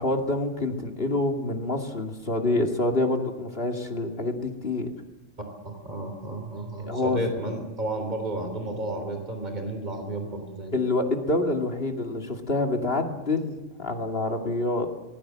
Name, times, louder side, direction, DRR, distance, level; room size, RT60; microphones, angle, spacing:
voice 1, 0.0-4.9 6.8-7.2 10.7-14.9, left 2 dB, 50° left, 3 dB, 2.7 m, -27 dB
voice 2, 5.6-10.7, right 1 dB, 35° right, 5 dB, 3.7 m, -32 dB
25.0 x 20.5 x 7.7 m, 1.1 s
omnidirectional pair, 1.3 m